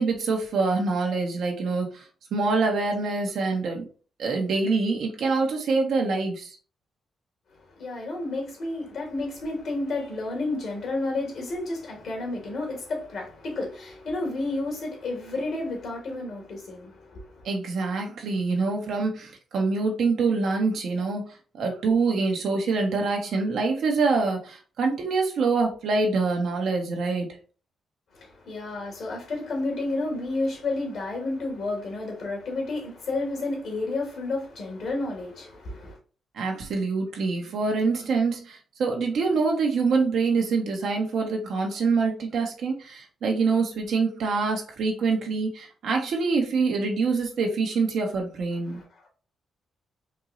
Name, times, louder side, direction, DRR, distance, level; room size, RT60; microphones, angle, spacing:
voice 1, 0.0-2.0 2.3-3.8 4.2-6.5 17.4-21.3 21.5-27.3 36.3-48.8, right 4 dB, 75° right, 1.1 m, -25 dB
voice 2, 7.8-17.4 28.1-36.0 48.7-49.1, left 2 dB, 70° left, 2.0 m, -31 dB
4.4 x 3.0 x 2.5 m
cardioid pair, 110°, 0 cm